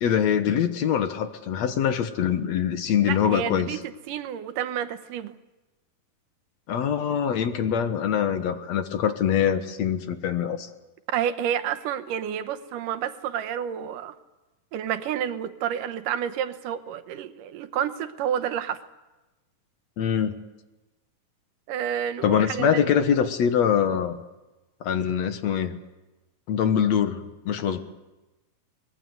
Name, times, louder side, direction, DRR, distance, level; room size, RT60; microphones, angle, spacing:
voice 1, 0.0-3.8 6.7-10.7 20.0-20.3 22.2-24.2 24.8-25.8 26.5-27.8, left 8 dB, 60° left, 9 dB, 2.2 m, -24 dB
voice 2, 3.0-3.8 4.1-5.4 11.1-14.1 14.7-18.9 21.7-22.9, right 9 dB, 75° right, 10 dB, 2.5 m, -29 dB
24.5 x 20.5 x 8.1 m, 1.1 s
omnidirectional pair, 4.0 m